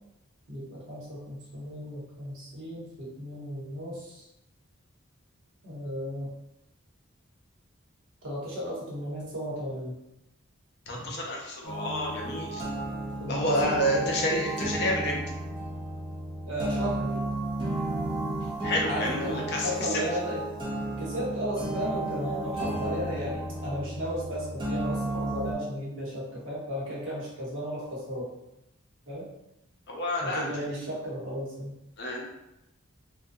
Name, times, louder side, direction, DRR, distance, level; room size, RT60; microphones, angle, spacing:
voice 1, 0.5-4.3 5.6-6.3 8.2-10.0 13.2-13.9 16.5-17.2 18.8-20.4 21.0-28.3 29.1-29.3 30.2-31.7, equal, 65° right, -5 dB, 0.9 m, -34 dB
voice 2, 10.9-12.7 13.3-15.2 18.6-20.0 29.9-30.5 32.0-32.2, equal, 50° left, -1 dB, 0.5 m, -29 dB
sound 1, 11.6-25.5, right 1 dB, 25° right, 0.4 m, -33 dB
2.5 x 2.2 x 2.6 m, 0.89 s
head